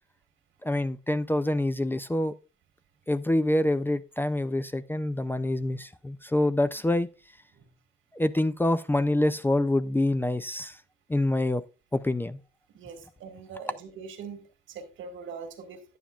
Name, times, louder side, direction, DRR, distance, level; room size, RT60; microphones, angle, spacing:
voice 1, 0.6-2.3 3.1-7.1 8.1-10.8 11.1-11.6 11.9-12.4, left 1 dB, 10° left, 0.4 m, -26 dB
voice 2, 12.7-14.4 14.7-15.8, right 5 dB, 85° right, 1.8 m, -42 dB
10.0 x 9.3 x 2.3 m
cardioid pair, 90°, 20 cm